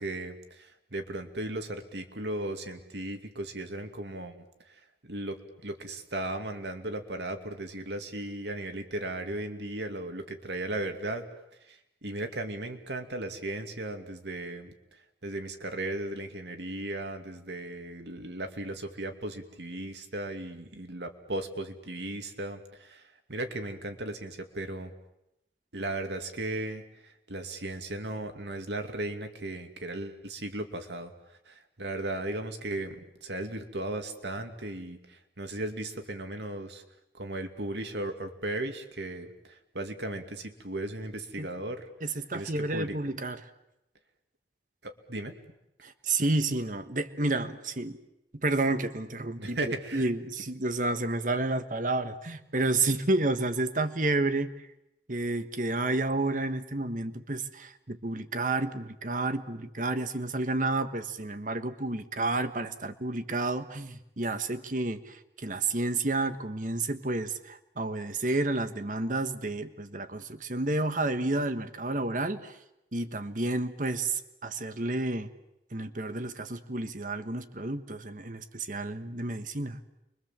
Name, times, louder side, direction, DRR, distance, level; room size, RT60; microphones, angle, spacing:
voice 1, 0.0-4.4 4.7-4.8 5.0-11.3 11.7-14.7 15.2-24.9 25.7-31.1 31.5-36.8 37.1-41.9 42.3-43.0 44.8-45.3 49.4-50.1, right 1 dB, 75° right, 6 dB, 2.5 m, -36 dB
voice 2, 42.0-43.4 45.8-48.0 48.4-54.7 55.1-72.6 72.9-75.3 75.7-79.8, right 2 dB, 50° right, 10 dB, 1.5 m, -30 dB
29.5 x 23.5 x 7.5 m, 0.87 s
head